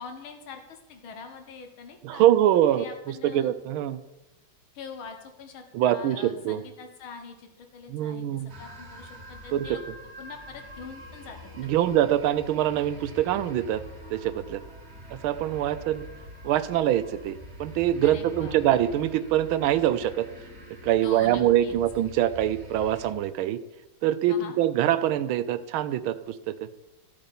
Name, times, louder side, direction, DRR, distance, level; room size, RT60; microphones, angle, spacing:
voice 1, 0.0-2.3 2.7-3.5 4.7-9.8 10.2-11.4 11.8-11.9 18.0-18.6 21.0-21.8 24.3-24.6, left 5 dB, 80° left, 5 dB, 2.1 m, -43 dB
voice 2, 2.0-4.0 5.7-6.6 7.9-8.5 9.5-9.7 11.6-13.8 14.1-14.6 15.1-16.1 16.4-20.3 20.8-23.6 24.0-26.7, right 12 dB, 85° right, 13 dB, 1.5 m, -24 dB
sound 1, 8.5-23.1, left 1 dB, 35° right, 1.4 m, -45 dB
14.5 x 8.7 x 4.3 m, 0.97 s
omnidirectional pair, 2.2 m